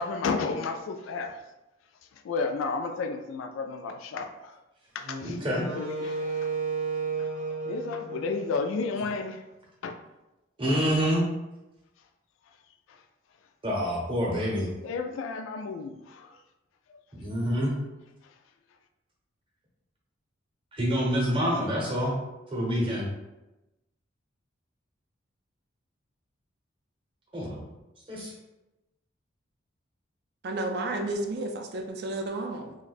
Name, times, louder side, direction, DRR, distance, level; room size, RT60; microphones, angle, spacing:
voice 1, 0.0-1.4 2.2-4.5 4.9-5.4 5.6-6.5 7.4-9.4 9.8-10.0 10.7-11.0 12.9-13.0 14.8-16.4, left 4 dB, 80° left, 7 dB, 0.3 m, -32 dB
Wind instrument woodwind instrument, 5.0-9.3, right 4 dB, 85° right, 0.8 m, -33 dB
voice 2, 5.2-5.6 10.6-11.2 13.6-14.7 17.1-17.8 20.7-22.1 22.5-23.1 27.3-27.6 28.1-28.3, equal, 25° right, -3 dB, 0.7 m, -27 dB
voice 3, 30.4-32.8, right 2 dB, 50° right, 4 dB, 0.3 m, -32 dB
2.5 x 2.2 x 3.9 m, 1.0 s
head